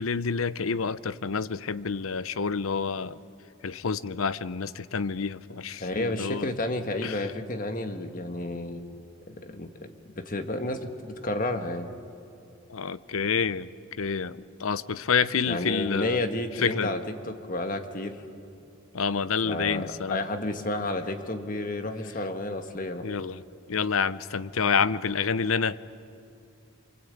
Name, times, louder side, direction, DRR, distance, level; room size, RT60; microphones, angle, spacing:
voice 1, 0.0-3.2 3.6-6.5 7.0-7.2 12.7-13.7 14.0-16.2 16.6-16.9 18.9-20.2 23.0-23.4 23.7-25.9, left 6 dB, 80° left, 16 dB, 0.7 m, -28 dB
voice 2, 5.8-8.8 9.3-11.9 15.4-18.2 19.4-23.1, left 2 dB, 40° left, 7 dB, 1.6 m, -31 dB
26.5 x 24.5 x 8.7 m, 2.5 s
head